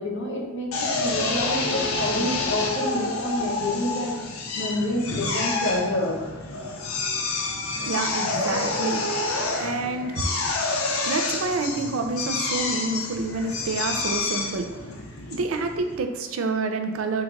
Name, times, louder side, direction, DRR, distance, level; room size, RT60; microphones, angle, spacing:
voice 1, 0.0-4.1 4.6-6.2, left 1 dB, 60° left, -1 dB, 0.9 m, -28 dB
Drill, 0.7-16.0, left 3 dB, 85° left, 0.7 m, -28 dB
voice 2, 7.8-10.8 11.0-15.0 15.3-17.2, right 3 dB, 75° right, 6 dB, 0.4 m, -28 dB
3.8 x 2.5 x 4.5 m, 1.2 s
head